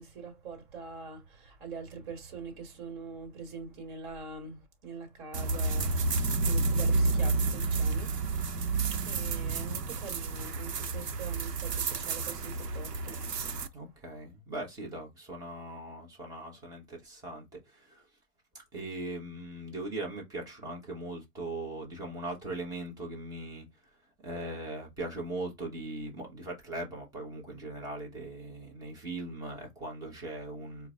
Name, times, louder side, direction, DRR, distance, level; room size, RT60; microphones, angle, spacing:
voice 1, 0.0-8.2 8.9-13.6, right 4 dB, 30° right, 1.6 m, -44 dB
sound 1, 5.3-13.7, right 3 dB, 75° right, 0.8 m, -30 dB
voice 2, 13.7-18.1 18.7-23.7 24.2-30.9, right 2 dB, 5° right, 1.0 m, -40 dB
4.4 x 2.2 x 3.6 m
figure-of-eight pair, 125°, 49 cm